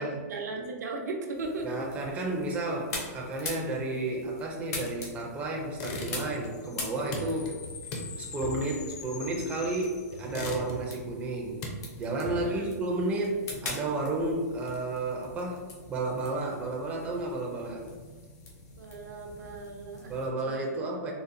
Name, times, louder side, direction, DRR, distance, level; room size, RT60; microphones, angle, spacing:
voice 1, 0.0-1.7 3.8-4.1 7.4-7.5 12.4-12.7 18.8-20.1 20.4-20.6, right 3 dB, 80° right, 2 dB, 0.6 m, -37 dB
sound 1, 1.3-20.3, left 2 dB, 70° left, 1.1 m, -44 dB
voice 2, 1.6-7.5 8.2-11.6 12.0-15.6 15.9-17.8 20.1-21.1, right 2 dB, 15° right, -2 dB, 0.4 m, -32 dB
sound 2, 5.7-6.5 6.8-9.7 10.1-11.0 11.4-12.7, left 2 dB, 35° left, 0.5 m, -38 dB
sound 3, 6.2-10.7, left 6 dB, 90° left, 0.4 m, -46 dB
3.9 x 2.1 x 2.5 m, 1.4 s
hypercardioid pair, 150°, 9 cm